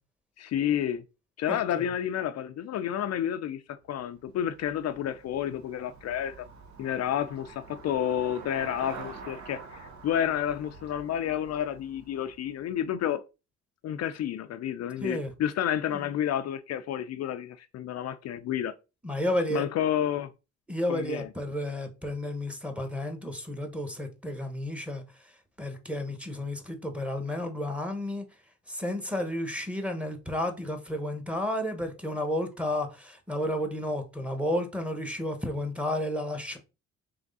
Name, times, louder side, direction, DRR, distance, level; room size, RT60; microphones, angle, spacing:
voice 1, 0.4-1.0 1.4-6.5 6.8-13.2 13.8-18.7 19.5-20.3 20.9-21.3, left 10 dB, 60° left, 0.4 m, -30 dB
voice 2, 1.5-1.8 15.0-15.3 15.9-16.0 19.0-19.7 20.7-25.0 25.6-28.2 28.7-36.6, left 1 dB, 5° right, 1.0 m, -32 dB
Traffic noise roadway noise / Bicycle, 3.8-13.0, right 4 dB, 65° right, 1.0 m, -47 dB
3.5 x 3.1 x 3.9 m
cardioid pair, 90°, 30 cm